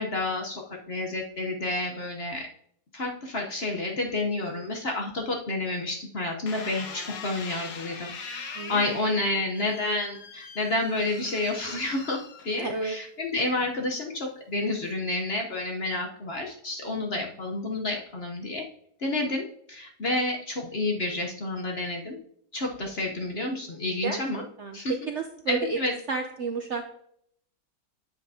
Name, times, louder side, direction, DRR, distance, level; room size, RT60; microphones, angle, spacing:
voice 1, 0.0-2.5 2.9-18.6 19.0-22.2 22.5-24.4 24.7-24.9 25.5-25.9, left 2 dB, 45° left, 1 dB, 0.9 m, -30 dB
sound 1, 6.5-12.9 13.5-14.0, left 5 dB, 65° left, 1.6 m, -42 dB
voice 2, 8.5-9.0 12.6-13.0 16.8-17.0 22.6-22.9 24.0-25.8 26.1-26.8, right 4 dB, 60° right, 4 dB, 0.7 m, -32 dB
9.6 x 8.0 x 2.8 m, 0.68 s
omnidirectional pair, 1.9 m